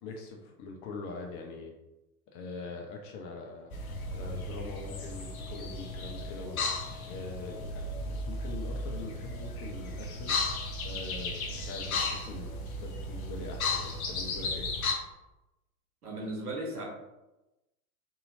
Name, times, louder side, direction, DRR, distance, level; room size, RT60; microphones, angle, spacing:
voice 1, 0.0-1.7 2.3-3.7 4.1-6.6 7.0-10.4 10.8-14.7, left 3 dB, 30° left, 2 dB, 0.5 m, -43 dB
sound 1, 3.7-14.9, left 3 dB, 70° left, 0.7 m, -35 dB
voice 2, 16.0-16.9, right 1 dB, 85° right, -3 dB, 1.1 m, -36 dB
3.6 x 2.8 x 2.6 m, 0.99 s
figure-of-eight pair, 85°, 44 cm